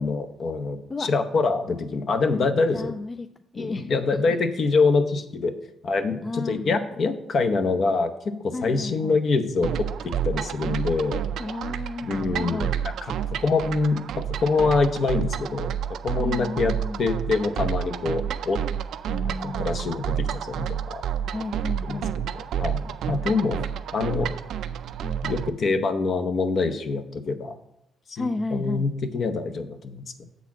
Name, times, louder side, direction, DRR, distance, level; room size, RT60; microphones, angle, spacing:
voice 1, 0.0-2.9 3.6-5.5 5.8-11.2 12.0-12.7 13.3-15.7 16.0-18.6 19.2-21.0 21.8-23.7 23.9-24.3 25.2-27.5 28.1-30.1, left 4 dB, 55° left, 8 dB, 0.8 m, -25 dB
voice 2, 2.7-3.3 3.5-4.0 6.2-6.9 8.5-9.2 11.4-12.8 16.2-17.0 19.1-19.9 21.3-22.2 23.6-24.2 25.0-25.2 28.2-28.9, left 2 dB, 30° left, 9 dB, 0.3 m, -33 dB
sound 1, 9.6-25.5, right 9 dB, 75° right, 0.3 m, -30 dB
7.2 x 4.1 x 5.9 m, 0.81 s
cardioid pair, 90°, 0 cm